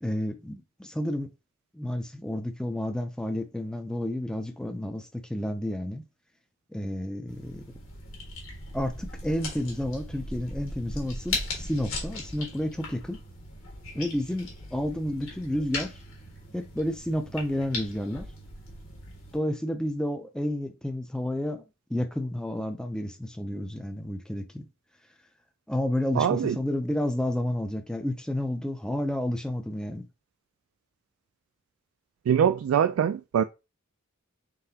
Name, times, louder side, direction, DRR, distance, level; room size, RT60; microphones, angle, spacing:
voice 1, 0.0-1.3 1.7-6.0 6.7-7.6 8.7-13.2 13.9-15.9 16.5-18.3 19.3-21.6 21.9-24.7 25.7-30.1, left 1 dB, 5° left, 0.4 m, -31 dB
sound 1, 7.3-19.4, left 2 dB, 75° left, 1.5 m, -38 dB
voice 2, 26.1-26.6 32.3-33.4, right 8 dB, 80° right, 0.3 m, -23 dB
3.9 x 3.6 x 2.8 m
head